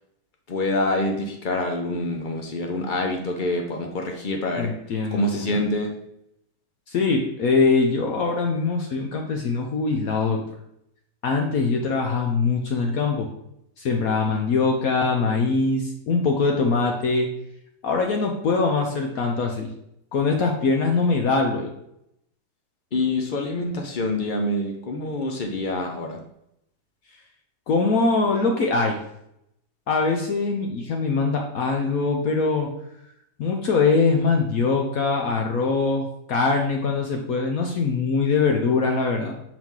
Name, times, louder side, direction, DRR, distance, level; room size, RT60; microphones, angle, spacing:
voice 1, 0.5-4.7 5.1-5.9 22.9-26.2, left 1 dB, 80° left, 3 dB, 0.4 m, -26 dB
voice 2, 4.6-5.5 6.9-10.4 11.2-13.3 13.8-17.3 17.8-19.7 20.1-21.7 27.7-29.0 29.9-32.7 33.4-39.3, left 4 dB, 65° left, 2 dB, 1.0 m, -22 dB
5.9 x 4.8 x 3.7 m, 0.77 s
omnidirectional pair, 1.8 m